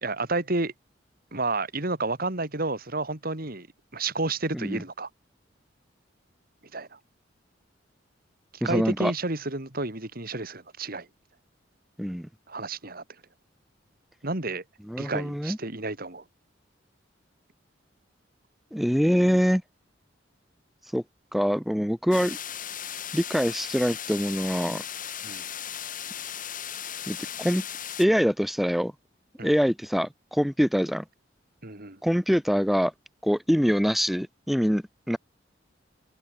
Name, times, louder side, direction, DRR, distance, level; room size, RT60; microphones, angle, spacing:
voice 1, 0.0-0.7 1.3-3.7 3.9-5.1 6.7-7.0 8.5-11.1 12.5-13.0 14.2-14.6 15.0-16.2 25.2-25.4 29.4-29.5 31.6-32.0, right 2 dB, 50° right, 3.2 m, -30 dB
voice 2, 8.6-9.1 12.0-12.3 14.9-15.6 18.7-19.6 20.9-21.0 21.3-22.4 23.1-24.8 27.1-27.6 28.0-28.9 29.4-31.0 32.0-32.9 33.2-35.2, equal, ahead, 1.6 m, -24 dB
sound 1, 22.1-28.1, left 9 dB, 45° left, 7.6 m, -36 dB
head